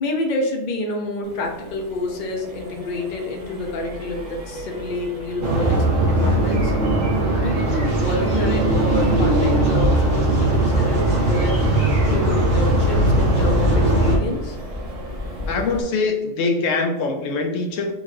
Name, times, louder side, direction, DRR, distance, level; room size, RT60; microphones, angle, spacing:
voice 1, 0.0-5.8 6.1-6.8 7.3-14.6, left 2 dB, 45° left, 2 dB, 0.7 m, -28 dB
Accelerating revving vroom, 1.2-15.8, left 1 dB, 35° right, 0.7 m, -35 dB
sound 1, 5.4-14.2, right 1 dB, 60° right, 1.3 m, -19 dB
voice 2, 15.5-17.9, left 3 dB, 75° left, 3 dB, 0.9 m, -23 dB
3.6 x 2.6 x 3.2 m, 1.0 s
omnidirectional pair, 1.4 m